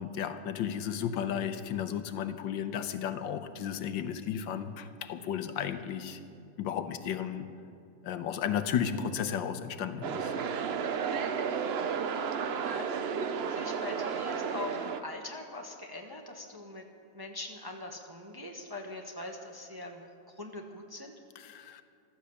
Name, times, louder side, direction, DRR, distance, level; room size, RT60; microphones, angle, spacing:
voice 1, 0.0-6.2 6.6-7.5 8.0-10.3 21.3-21.8, left 8 dB, 85° left, 10 dB, 1.5 m, -34 dB
sound 1, 10.0-15.0, right 6 dB, 90° right, 0.5 m, -32 dB
voice 2, 13.5-16.8 17.1-20.0 20.4-21.1, left 2 dB, 15° right, 2 dB, 0.9 m, -42 dB
15.0 x 12.5 x 7.0 m, 2.4 s
omnidirectional pair, 2.0 m